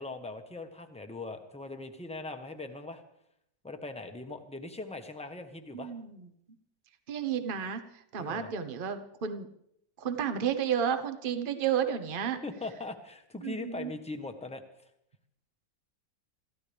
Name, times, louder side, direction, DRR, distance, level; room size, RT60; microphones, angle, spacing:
voice 1, 0.0-3.0 3.6-5.9 8.2-8.5 12.3-14.6, left 3 dB, 5° left, 5 dB, 1.0 m, -40 dB
voice 2, 5.7-6.3 7.1-7.8 8.1-9.5 10.0-12.4 13.4-13.9, right 8 dB, 35° right, 9 dB, 1.0 m, -31 dB
27.0 x 14.5 x 3.5 m, 0.75 s
omnidirectional pair, 1.9 m